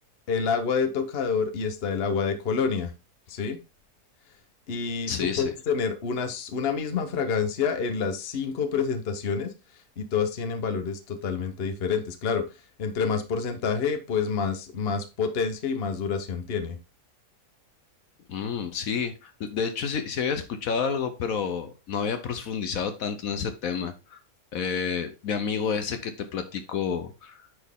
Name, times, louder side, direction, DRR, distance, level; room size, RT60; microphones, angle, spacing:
voice 1, 0.3-2.9 3.3-3.6 4.7-9.5 10.0-12.4 12.8-16.8, left 5 dB, 45° left, 9 dB, 1.1 m, -28 dB
voice 2, 5.1-5.4 18.3-24.2 24.5-27.4, left 6 dB, 70° left, 9 dB, 1.2 m, -29 dB
9.1 x 4.4 x 3.6 m, 0.28 s
omnidirectional pair, 1.6 m